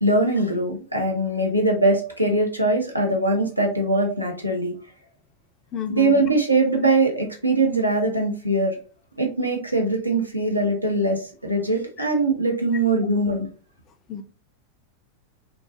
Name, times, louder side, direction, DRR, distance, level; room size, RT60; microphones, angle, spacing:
voice 1, 0.0-4.7 5.9-8.8 9.2-13.5, right 2 dB, 90° right, 1 dB, 0.6 m, -22 dB
voice 2, 5.7-6.1 14.1-14.2, left 9 dB, 30° left, 7 dB, 0.4 m, -29 dB
2.3 x 2.2 x 2.3 m, 0.38 s
figure-of-eight pair, 90°, 0 cm